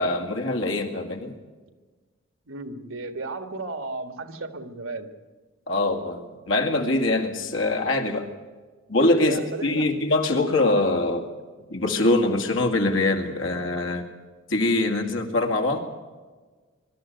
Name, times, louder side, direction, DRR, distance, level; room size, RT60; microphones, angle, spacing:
voice 1, 0.0-1.4 5.7-8.3 8.9-11.3 11.7-14.1 14.5-15.8, left 2 dB, 70° left, 4 dB, 2.2 m, -23 dB
voice 2, 2.5-5.1 9.2-9.9 11.6-11.7, right 3 dB, 80° right, 9 dB, 1.7 m, -34 dB
23.0 x 13.0 x 9.3 m, 1.4 s
head